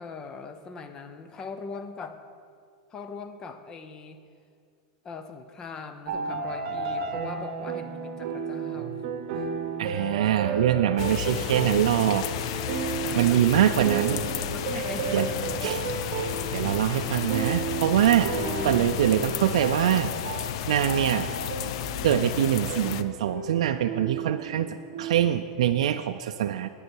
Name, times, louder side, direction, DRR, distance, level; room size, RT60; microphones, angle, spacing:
voice 1, 0.0-2.2 2.9-4.2 5.0-9.0 9.3-9.5 13.0-13.5 14.5-15.9, left 4 dB, 20° left, 8 dB, 0.6 m, -41 dB
sound 1, 6.1-25.3, right 5 dB, 55° right, 1.0 m, -33 dB
voice 2, 9.8-12.3 13.2-14.2 14.7-14.8 15.1-15.3 15.6-15.8 16.5-18.3 18.6-20.1 20.7-21.3 22.0-26.7, right 11 dB, 85° right, 7 dB, 0.3 m, -24 dB
sound 2, 11.0-23.0, left 11 dB, 60° left, 0.4 m, -32 dB
9.6 x 9.4 x 4.6 m, 2.2 s
supercardioid pair, 155°, 3 cm